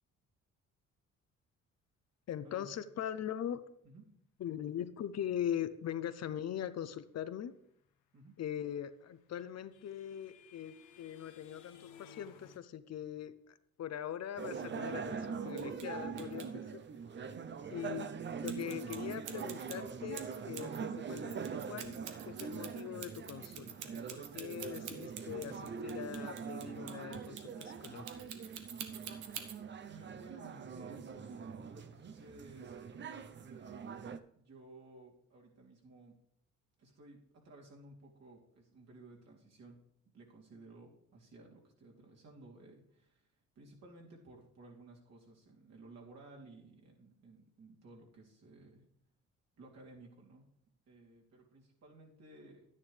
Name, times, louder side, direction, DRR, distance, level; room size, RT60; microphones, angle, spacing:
voice 1, 2.3-3.6 4.4-7.5 8.4-16.8 17.7-18.1 18.4-28.0, left 10 dB, 60° left, 12 dB, 0.7 m, -41 dB
sound 1, 8.9-12.6, left 8 dB, 85° left, 1.0 m, -58 dB
sound 2, 14.4-34.2, right 6 dB, 40° right, 0.6 m, -43 dB
sound 3, 15.5-15.9 16.2-16.5 18.5-20.8 21.1-29.6, right 9 dB, 90° right, 1.1 m, -47 dB
voice 2, 29.9-33.1 33.5-34.1 34.4-36.1 36.8-39.8 40.1-43.3 43.5-48.8 49.6-50.4 50.9-52.7, right 2 dB, 60° right, -2 dB, 3.0 m, -56 dB
11.0 x 9.6 x 3.3 m, 0.71 s
cardioid pair, 90°, 30 cm